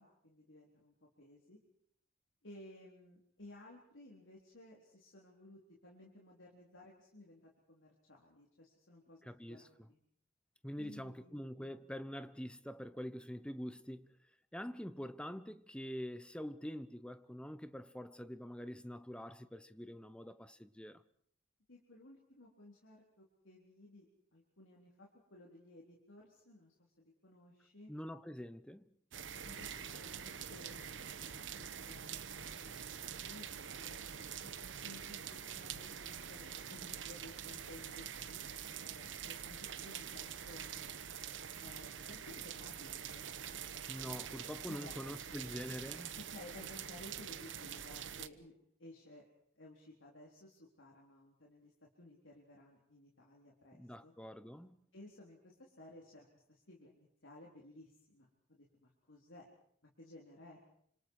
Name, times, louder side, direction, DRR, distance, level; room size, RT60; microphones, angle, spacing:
voice 1, 0.0-1.6 2.4-10.0 10.8-11.9 21.7-24.1 24.3-27.9 29.1-30.1 30.4-30.9 31.2-40.9 41.6-43.3 44.7-45.0 46.2-48.5 48.8-49.3 49.5-51.7 52.0-54.1 54.9-59.5 60.0-60.6, left 1 dB, 90° left, 4.1 m, -57 dB
voice 2, 9.2-9.9 10.6-14.2 14.5-21.0 27.9-28.9 43.9-46.2 53.7-54.9, equal, 5° left, 1.0 m, -45 dB
sound 1, 29.1-48.3, right 8 dB, 75° right, 1.1 m, -45 dB
30.0 x 26.5 x 4.9 m
head